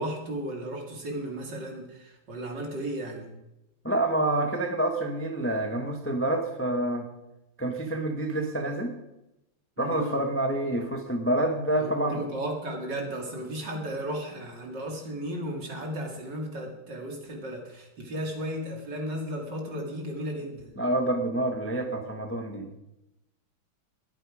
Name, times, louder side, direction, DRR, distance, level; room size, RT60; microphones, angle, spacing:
voice 1, 0.0-3.3 9.8-10.2 11.8-20.8, right 1 dB, 55° right, 2 dB, 2.9 m, -35 dB
voice 2, 3.8-7.0 7.6-8.9 9.8-12.2 20.8-22.7, right 1 dB, 10° left, 4 dB, 0.9 m, -27 dB
21.0 x 8.3 x 4.9 m, 0.91 s
omnidirectional pair, 2.3 m